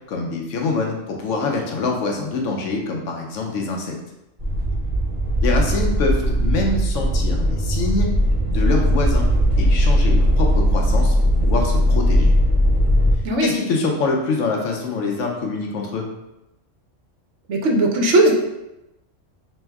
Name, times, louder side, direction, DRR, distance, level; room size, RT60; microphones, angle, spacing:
voice 1, 0.1-3.9 5.4-8.1 8.4-9.3 9.6-11.1 11.4-12.3 13.4-16.1, left 3 dB, 80° left, 1 dB, 1.0 m, -25 dB
sound 1, 4.4-13.1, equal, 30° right, 1.2 m, -18 dB
voice 2, 17.5-18.3, right 1 dB, 70° right, 1 dB, 1.0 m, -17 dB
3.4 x 3.2 x 3.4 m, 0.91 s
omnidirectional pair, 1.3 m